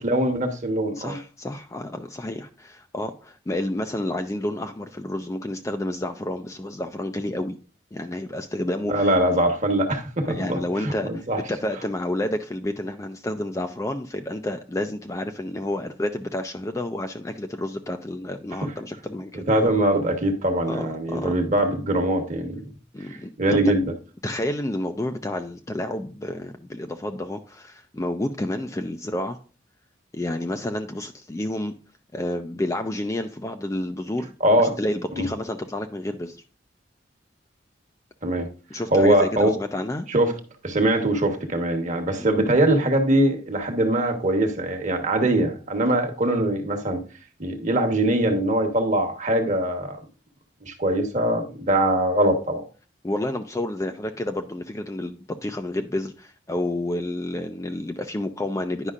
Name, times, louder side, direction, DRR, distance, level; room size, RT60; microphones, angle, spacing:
voice 1, 0.0-1.2 8.9-11.4 18.6-18.7 19.3-22.6 23.4-23.9 34.4-34.8 35.1-35.3 38.2-38.5 38.9-39.5 40.1-40.3 40.6-47.0 47.4-50.0 50.7-52.6, right 1 dB, 40° right, 1.2 m, -22 dB
voice 2, 1.0-7.6 7.9-9.1 10.3-19.4 20.7-21.4 22.9-23.3 24.2-29.4 30.1-31.7 32.1-36.4 38.7-40.1 42.2-42.3 53.0-58.9, left 1 dB, 15° left, 0.4 m, -30 dB
9.8 x 5.4 x 2.4 m
head